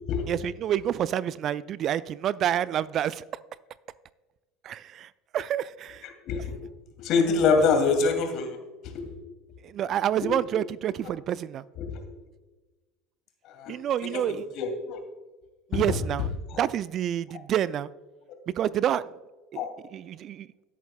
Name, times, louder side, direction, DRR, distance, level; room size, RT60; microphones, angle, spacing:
voice 1, 0.3-3.2 4.6-6.1 9.6-11.6 13.7-14.5 15.7-16.3 16.6-17.9 18.5-19.1 19.5-19.6 19.9-20.5, right 10 dB, 45° right, 19 dB, 0.3 m, -28 dB
voice 2, 6.2-6.6 7.0-8.6 8.8-9.1 11.8-12.0 13.4-13.8 14.0-15.0 15.7-16.0 19.5-19.7, left 4 dB, 50° left, 4 dB, 2.3 m, -25 dB
17.0 x 8.5 x 2.2 m, 1.2 s
figure-of-eight pair, 75°, 0 cm